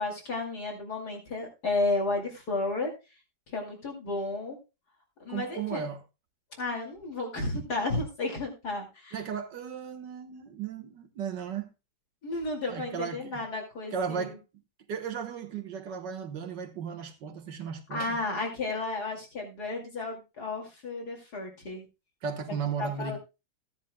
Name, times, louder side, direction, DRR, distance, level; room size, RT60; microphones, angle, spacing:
voice 1, 0.0-2.9 3.5-4.6 5.2-5.9 6.5-9.2 12.2-14.4 17.9-21.8 22.8-23.2, left 2 dB, 65° left, 3.0 m, -32 dB
voice 2, 5.3-6.0 9.1-11.7 12.7-13.4 13.9-14.4 14.9-18.2 22.2-23.2, right 6 dB, 80° right, 1.9 m, -35 dB
15.5 x 10.5 x 2.2 m
omnidirectional pair, 1.9 m